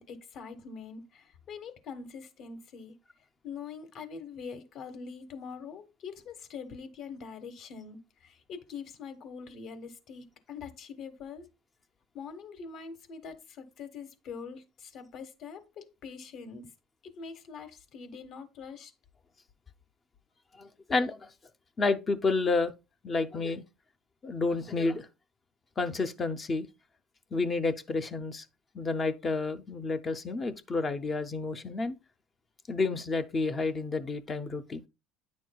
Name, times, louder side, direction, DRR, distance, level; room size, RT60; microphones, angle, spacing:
voice 1, 0.0-3.0 3.4-11.5 12.1-16.7 17.0-18.9, left 5 dB, 55° left, 1.3 m, -44 dB
voice 2, 20.6-21.3 21.8-22.7 23.0-23.6 24.2-25.1 25.8-26.7 27.3-28.5 28.7-32.0 32.7-34.8, left 3 dB, 25° left, 0.5 m, -30 dB
9.2 x 6.1 x 2.3 m
cardioid pair, 125°, 0 cm